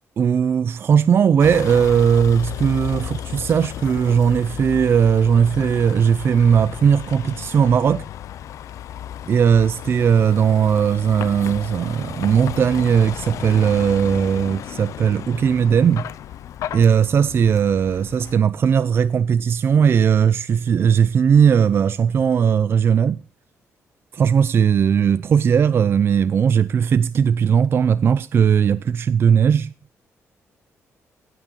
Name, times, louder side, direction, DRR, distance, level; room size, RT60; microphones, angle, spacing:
voice 1, 0.2-8.0 9.3-16.1 16.7-23.2 24.1-29.7, right 7 dB, 45° right, 0.5 m, -18 dB
Vehicle, 1.4-18.3, left 11 dB, 75° left, 0.6 m, -34 dB
16.0 x 6.1 x 4.4 m
cardioid pair, 120°, 6 cm